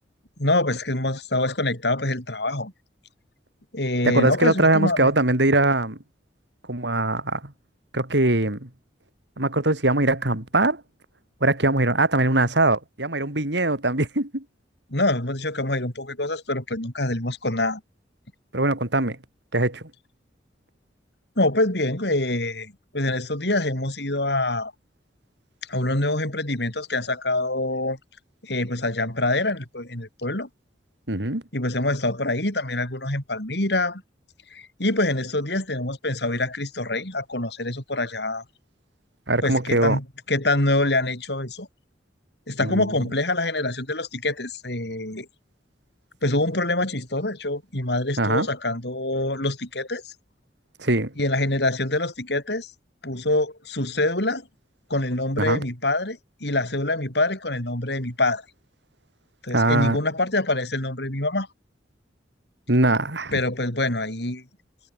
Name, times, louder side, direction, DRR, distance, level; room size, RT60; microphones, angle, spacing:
voice 1, 0.4-2.7 3.7-5.1 14.9-17.8 21.4-24.7 25.7-28.0 28.4-30.5 31.5-34.0 34.5-38.4 39.4-41.7 42.5-45.3 46.2-50.1 51.2-52.7 53.0-54.5 54.9-58.4 59.4-61.5 63.3-64.4, left 2 dB, 65° left, 5.7 m, -25 dB
voice 2, 4.1-6.0 6.7-7.5 7.9-8.7 9.4-10.8 11.4-14.4 18.5-19.2 19.5-19.8 31.1-31.4 39.3-40.0 42.6-42.9 48.2-48.5 50.8-51.1 55.4-55.6 59.5-60.0 62.7-63.3, right 2 dB, 75° right, 3.6 m, -21 dB
head